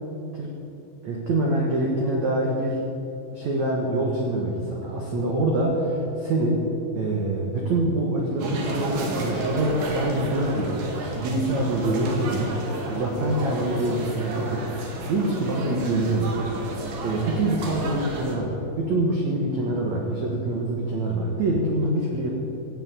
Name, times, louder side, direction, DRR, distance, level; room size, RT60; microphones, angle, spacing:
voice 1, 1.0-2.8 3.3-6.7 6.9-16.4 17.0-22.3, right 1 dB, 70° right, -1 dB, 1.7 m, -25 dB
sound 1, 8.4-18.4, right 1 dB, 55° right, 3.1 m, -32 dB
17.0 x 8.3 x 8.2 m, 3.0 s
omnidirectional pair, 5.7 m